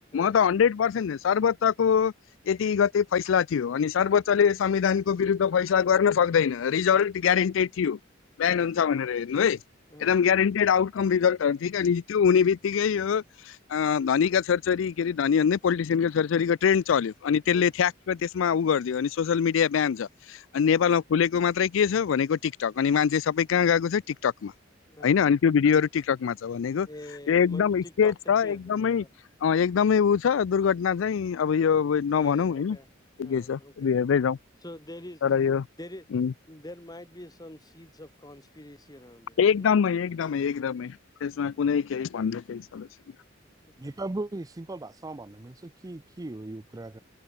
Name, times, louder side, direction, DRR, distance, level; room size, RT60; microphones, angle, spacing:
voice 1, 0.1-2.1 2.5-8.0 8.4-9.6 10.0-24.5 25.0-26.9 27.3-29.0 29.4-32.8 33.2-34.4 35.2-35.7 36.1-36.3 39.4-42.9, left 7 dB, 85° left, 0.4 m, -24 dB
voice 2, 24.8-25.3 26.8-29.1 32.1-32.9 33.2-33.9 34.6-35.2 35.8-36.0 36.5-39.8 43.6-43.9, left 1 dB, 20° left, 4.6 m, -46 dB
voice 3, 43.8-47.0, right 2 dB, 20° right, 0.5 m, -37 dB
head